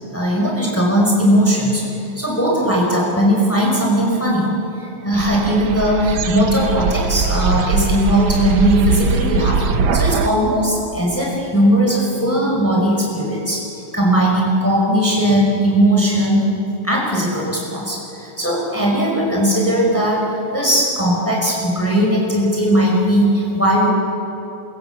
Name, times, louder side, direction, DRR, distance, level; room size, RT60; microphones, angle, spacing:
voice 1, 0.1-1.8 2.2-9.6 9.9-13.6 13.9-16.4 16.8-23.9, equal, 5° left, -3 dB, 5.3 m, -18 dB
sound 1, 5.1-10.3, right 5 dB, 85° right, 1.8 m, -21 dB
27.5 x 24.5 x 7.1 m, 3.0 s
omnidirectional pair, 2.1 m